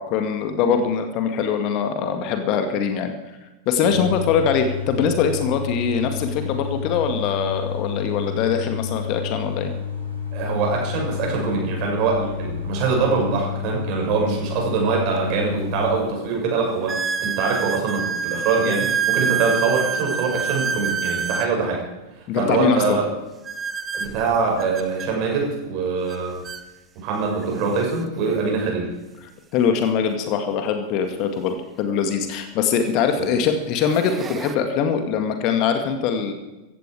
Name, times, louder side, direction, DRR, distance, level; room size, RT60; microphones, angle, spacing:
voice 1, 0.0-3.1 3.7-9.7 22.3-23.0 29.5-36.3, left 6 dB, 40° left, 7 dB, 1.9 m, -22 dB
sound 1, 3.8-16.0, left 7 dB, 85° left, 4.2 m, -30 dB
voice 2, 10.3-21.8 22.2-23.1 23.9-26.4 26.9-28.9, right 4 dB, 40° right, 0 dB, 6.4 m, -23 dB
sound 2, 15.2-15.3 15.9-16.0 16.9-21.5 23.4-25.1 26.1-26.2 26.4-26.6 27.4-27.5 29.7-29.8 31.9-32.0 32.7-33.1 33.6-34.5, right 6 dB, 20° right, 1.0 m, -27 dB
15.5 x 15.0 x 4.9 m, 1.1 s
figure-of-eight pair, 90°, 0 cm